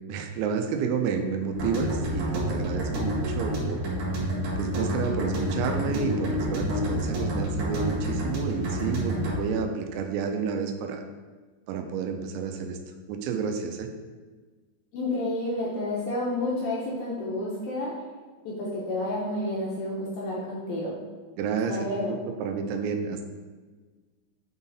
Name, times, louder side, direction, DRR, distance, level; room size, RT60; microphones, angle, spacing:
voice 1, 0.1-3.8 4.6-11.0 11.7-12.8 13.1-13.9 21.4-23.3, right 6 dB, 90° right, 5 dB, 3.0 m, -30 dB
sound 1, 1.5-9.3, equal, 60° right, 3.2 m, -29 dB
voice 2, 14.9-17.9 18.4-21.0 21.7-22.2, left 1 dB, 75° left, -5 dB, 2.3 m, -30 dB
9.0 x 3.9 x 4.1 m, 1.4 s
omnidirectional pair, 5.3 m